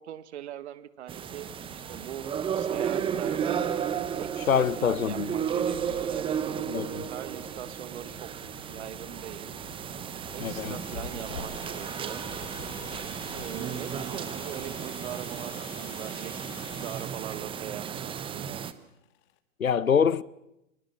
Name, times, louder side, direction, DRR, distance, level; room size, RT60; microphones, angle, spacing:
voice 1, 0.0-3.6 4.2-6.4 7.1-8.3 8.7-9.5 10.3-12.2 13.3-18.6, right 11 dB, 55° right, 1.5 m, -41 dB
sound 1, 1.1-18.7, right 8 dB, 15° right, 0.9 m, -34 dB
sound 2, 1.2-16.9, left 6 dB, 60° left, 3.6 m, -49 dB
sound 3, 1.9-19.4, left 13 dB, 30° left, 1.6 m, -52 dB
voice 2, 4.5-5.4 6.7-7.1 10.4-10.8 19.6-20.2, left 7 dB, 85° left, 0.9 m, -25 dB
22.5 x 20.5 x 7.6 m
figure-of-eight pair, 115°, 40 cm